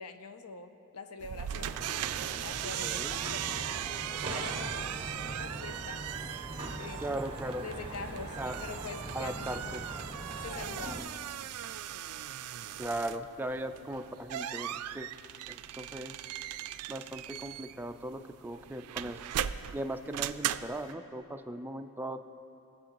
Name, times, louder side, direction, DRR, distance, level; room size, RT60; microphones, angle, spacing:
voice 1, 0.0-1.8 2.4-3.7 4.1-5.0 5.3-6.1 6.8-7.1 7.5-9.8 10.4-11.1, left 4 dB, 75° left, 8 dB, 0.6 m, -44 dB
sound 1, 1.2-20.9, right 11 dB, 80° right, 0.3 m, -39 dB
sound 2, 1.5-11.0, right 2 dB, 25° right, 1.0 m, -41 dB
voice 2, 2.8-3.2 7.0-7.6 8.4-8.6 9.1-9.8 12.8-15.1 15.5-16.2 16.9-19.2 19.7-22.2, right 1 dB, 10° right, 7 dB, 0.4 m, -38 dB
21.5 x 7.5 x 3.0 m, 2.8 s
head